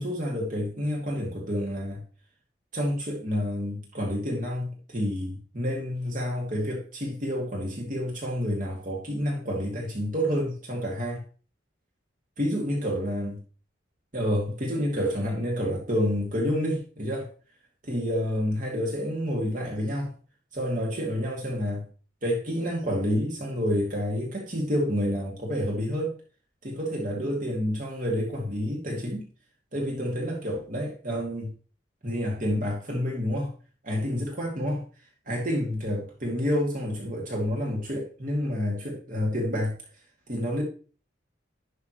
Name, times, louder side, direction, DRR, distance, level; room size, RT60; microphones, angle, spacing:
voice 1, 0.0-2.0 2.7-11.2 12.4-13.4 14.1-17.3 17.8-20.1 20.5-21.9 22.2-26.1 26.6-29.3 29.7-31.5 32.0-33.5 33.8-34.8 35.3-39.7 40.3-40.6, equal, 45° right, 2.3 m, -29 dB
11.0 x 6.2 x 3.1 m
head